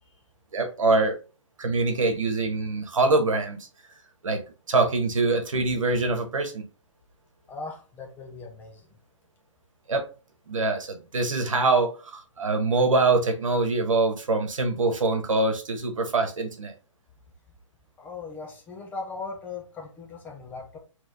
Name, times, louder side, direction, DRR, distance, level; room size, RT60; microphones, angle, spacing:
voice 1, 0.5-1.2 1.6-3.6 4.2-4.4 4.7-6.6 9.9-10.0 10.5-16.7, right 3 dB, 80° right, 5 dB, 1.2 m, -24 dB
voice 2, 7.5-8.9 18.0-20.8, left 4 dB, 10° left, 1 dB, 0.6 m, -38 dB
3.2 x 3.1 x 3.9 m, 0.34 s
hypercardioid pair, 145°, 17 cm